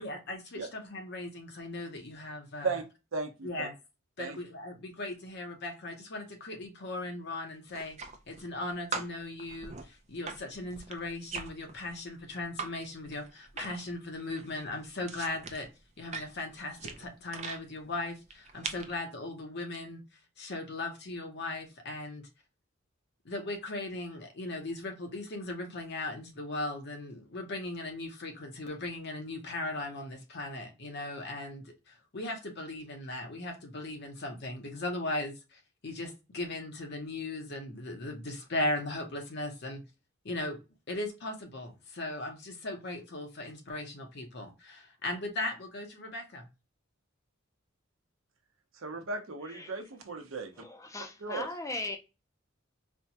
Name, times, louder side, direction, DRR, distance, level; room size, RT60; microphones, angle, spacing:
voice 1, 0.0-2.8 3.4-3.7 4.2-8.0 8.3-15.7 16.0-20.0 20.4-22.2 23.2-39.8 40.2-40.6 40.9-46.5, left 2 dB, 55° left, 0.8 m, -38 dB
voice 2, 3.1-3.7 4.2-4.4 48.7-50.6 51.2-51.5, right 4 dB, 80° right, 0.8 m, -36 dB
sound 1, 7.7-8.6 8.9-12.7 13.0-13.9 14.2-17.6 18.3-18.9, right 4 dB, 35° right, 0.5 m, -41 dB
voice 3, 50.6-52.0, left 2 dB, 15° left, 0.5 m, -38 dB
4.3 x 2.2 x 2.7 m
head